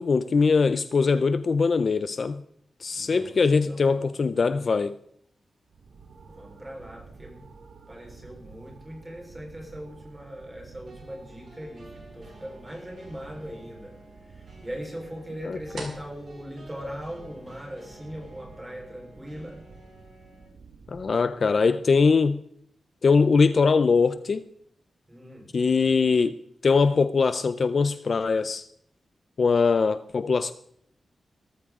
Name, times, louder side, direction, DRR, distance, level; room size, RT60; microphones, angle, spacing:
voice 1, 0.0-2.4 2.8-4.9 15.4-15.6 20.9-22.4 23.0-24.4 25.5-28.6 29.4-30.5, left 4 dB, 45° left, 0.4 m, -22 dB
voice 2, 2.9-4.2 6.2-7.5 7.9-19.6 25.1-25.5, equal, 10° right, 4.2 m, -40 dB
sound 1, 4.1-17.7, right 3 dB, 65° right, 6.1 m, -54 dB
sound 2, 5.7-21.7, right 4 dB, 85° right, 1.7 m, -50 dB
sound 3, 10.9-20.5, equal, 45° right, 7.4 m, -52 dB
18.5 x 14.0 x 3.7 m
wide cardioid pair, 165°, 0 cm